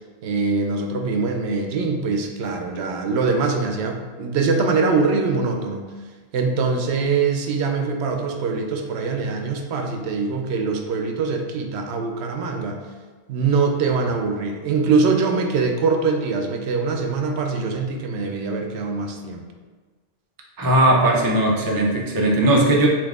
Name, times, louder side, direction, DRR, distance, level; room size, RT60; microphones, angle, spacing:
voice 1, 0.2-5.9 6.3-12.8 13.3-19.4, right 4 dB, 80° right, 3 dB, 0.9 m, -23 dB
voice 2, 20.6-22.9, right 1 dB, 25° right, -2 dB, 0.5 m, -18 dB
5.9 x 2.5 x 3.5 m, 1.4 s
omnidirectional pair, 1.1 m